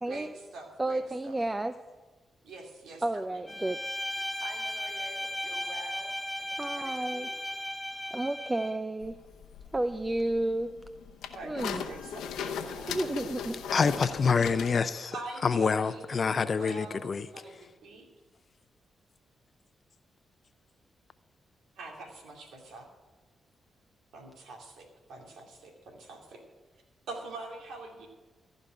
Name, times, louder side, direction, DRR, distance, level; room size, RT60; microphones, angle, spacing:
voice 1, 0.1-1.4 2.4-3.0 3.3-3.6 4.4-7.3 11.3-14.0 15.1-18.0 21.8-22.9 24.1-26.4 27.1-28.1, right 2 dB, 80° right, 2.6 m, -45 dB
voice 2, 0.8-1.8 3.0-3.8 6.6-7.3 8.1-9.2 9.7-10.8 11.4-11.8 12.9-13.5, right 1 dB, 20° right, 0.6 m, -31 dB
Bowed string instrument, 3.5-8.8, left 1 dB, 15° left, 1.0 m, -36 dB
sound 1, 9.0-14.8, left 7 dB, 85° left, 0.8 m, -38 dB
voice 3, 13.7-17.3, left 5 dB, 55° left, 0.6 m, -27 dB
15.0 x 5.3 x 9.6 m
supercardioid pair, 45°, 0 cm